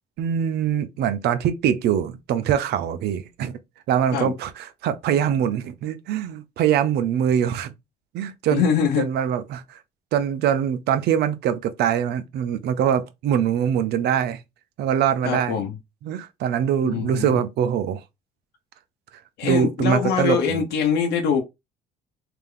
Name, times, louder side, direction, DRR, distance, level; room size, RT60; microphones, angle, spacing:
voice 1, 0.2-3.6 3.9-7.7 8.1-8.6 9.0-9.8 10.1-14.4 14.8-15.6 16.0-18.0 19.4-20.6, right 9 dB, 75° right, 0.7 m, -23 dB
voice 2, 8.5-9.1 15.2-15.7 16.8-17.4 19.4-21.4, left 7 dB, 85° left, 0.9 m, -23 dB
3.4 x 2.9 x 3.7 m
cardioid pair, 110°, 17 cm